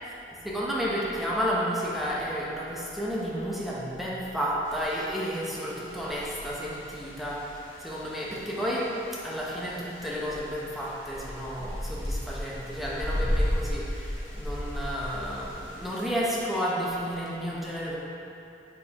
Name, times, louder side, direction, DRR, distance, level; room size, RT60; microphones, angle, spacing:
voice 1, 0.4-8.9 9.2-18.0, equal, ahead, -7 dB, 0.8 m, -31 dB
sound 1, 4.7-16.1, equal, 90° left, 1.2 m, -35 dB
8.4 x 4.5 x 3.0 m, 2.8 s
head